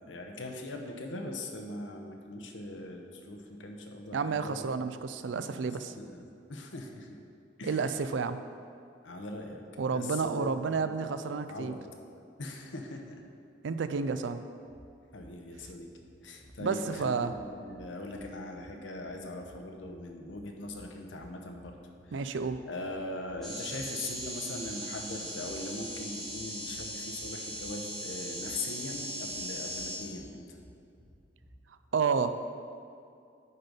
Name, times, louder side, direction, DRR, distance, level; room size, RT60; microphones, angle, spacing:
voice 1, 0.1-4.7 5.2-7.1 7.6-7.9 9.0-9.6 9.9-11.1 11.5-11.9 12.4-13.2 15.1-15.9 16.2-21.8 22.0-22.2 22.7-30.6, left 2 dB, 85° left, 3 dB, 0.9 m, -41 dB
voice 2, 4.1-5.9 7.7-8.4 9.8-11.8 13.6-14.4 16.6-17.3 22.1-22.6 31.9-32.3, right 5 dB, 80° right, 11 dB, 0.4 m, -30 dB
sound 1, 14.7-31.6, equal, 40° right, 1.3 m, -57 dB
sound 2, 23.4-30.0, right 1 dB, ahead, 1.5 m, -39 dB
9.4 x 4.0 x 5.2 m, 2.4 s
head